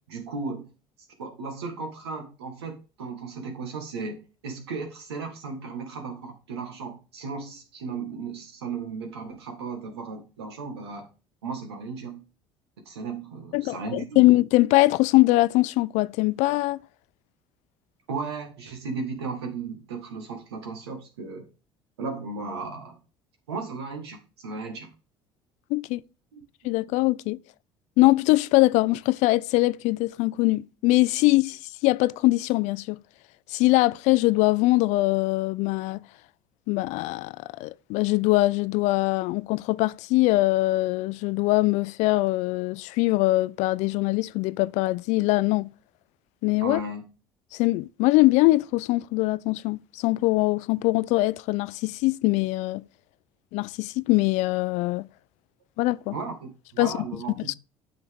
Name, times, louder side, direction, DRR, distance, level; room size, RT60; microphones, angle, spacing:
voice 1, 0.1-0.7 1.2-11.1 11.4-12.2 12.8-14.2 18.1-21.5 22.0-23.0 23.5-24.9 26.3-26.4 46.6-47.0 56.1-57.5, right 4 dB, 85° right, 1.7 m, -35 dB
voice 2, 13.5-16.8 25.7-26.0 26.6-27.4 28.0-33.0 33.5-36.0 36.7-45.7 46.4-46.8 47.5-52.8 53.5-55.1 55.8-56.2 56.8-57.0 57.5-57.6, left 20 dB, 65° left, 0.4 m, -22 dB
9.3 x 5.9 x 3.5 m
hypercardioid pair, 65°, 13 cm